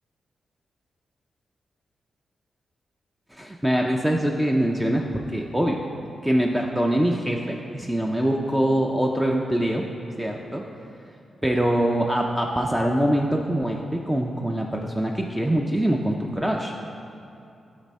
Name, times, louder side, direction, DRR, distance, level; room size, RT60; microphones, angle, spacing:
voice 1, 3.3-5.9 6.2-9.8 10.2-10.6 11.4-16.7, right 1 dB, 10° right, 1 dB, 0.5 m, -24 dB
9.5 x 4.1 x 4.2 m, 2.7 s
cardioid pair, 75°, 0 cm